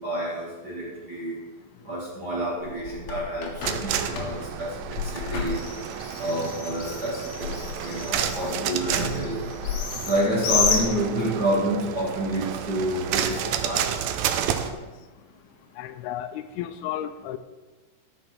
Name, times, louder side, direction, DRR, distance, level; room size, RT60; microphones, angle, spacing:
voice 1, 0.0-1.4 1.8-5.6 6.2-9.4 10.1-14.1, right 1 dB, 35° right, -5 dB, 1.8 m, -28 dB
Bird, 2.6-11.5, left 5 dB, 65° left, 3.2 m, -31 dB
sound 1, 3.6-14.7, right 9 dB, 80° right, 2.3 m, -31 dB
voice 2, 15.8-17.4, left 11 dB, 80° left, 11 dB, 2.4 m, -33 dB
14.0 x 6.1 x 6.4 m, 1.2 s
omnidirectional pair, 4.6 m